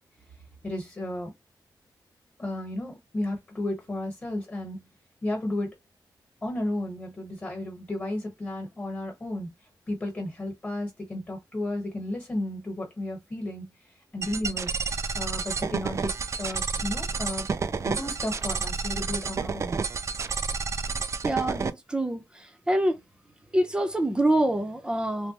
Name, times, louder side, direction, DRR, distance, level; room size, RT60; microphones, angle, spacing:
voice 1, 0.6-1.3 2.4-4.9 5.2-5.7 6.4-9.5 9.9-13.7 14.1-14.7 15.0-17.5 17.8-19.8, left 1 dB, 25° left, 1.3 m, -33 dB
sound 1, 14.2-21.7, right 5 dB, 40° right, 0.3 m, -30 dB
voice 2, 21.2-22.2 22.7-23.0 23.5-25.3, right 1 dB, 10° right, 0.7 m, -25 dB
3.3 x 2.2 x 2.9 m
wide cardioid pair, 120°, 7 cm